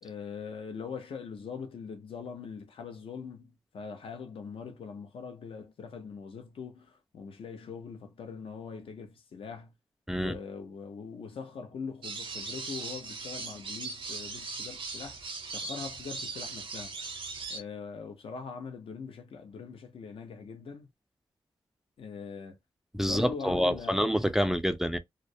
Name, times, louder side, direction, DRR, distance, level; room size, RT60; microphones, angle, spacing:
voice 1, 0.0-9.7 10.1-15.2 15.5-17.1 17.5-20.9 22.0-22.6 23.0-24.0, left 5 dB, 80° left, 0.7 m, -42 dB
sound 1, 12.0-17.6, right 4 dB, 70° right, 0.6 m, -39 dB
voice 2, 22.9-25.0, equal, 5° right, 0.3 m, -27 dB
2.3 x 2.0 x 2.5 m
cardioid pair, 75°, 9 cm